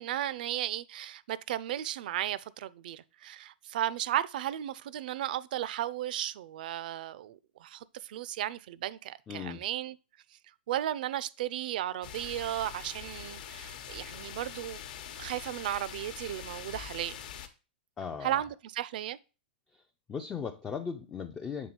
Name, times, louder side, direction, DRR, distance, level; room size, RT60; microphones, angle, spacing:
voice 1, 0.0-10.0 10.7-14.8 15.2-17.2 18.2-19.2, right 12 dB, 55° right, 0.4 m, -35 dB
voice 2, 9.3-9.6 18.0-18.4 19.7-19.8 20.1-21.7, left 6 dB, 15° left, 0.4 m, -37 dB
sound 1, 12.0-17.5, left 9 dB, 55° left, 0.9 m, -44 dB
7.2 x 3.6 x 4.4 m
hypercardioid pair, 155°, 6 cm